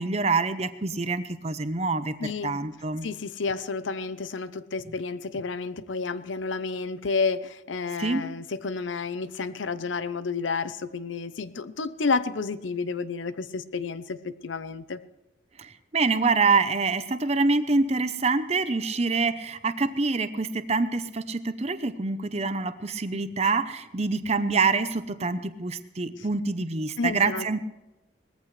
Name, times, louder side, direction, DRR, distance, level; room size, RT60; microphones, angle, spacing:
voice 1, 0.0-3.1 8.0-8.3 15.6-27.6, right 4 dB, 35° right, 11 dB, 0.8 m, -26 dB
voice 2, 2.2-2.6 3.0-15.0 27.0-27.6, left 4 dB, 85° left, 14 dB, 0.7 m, -30 dB
19.5 x 14.5 x 3.3 m, 0.97 s
head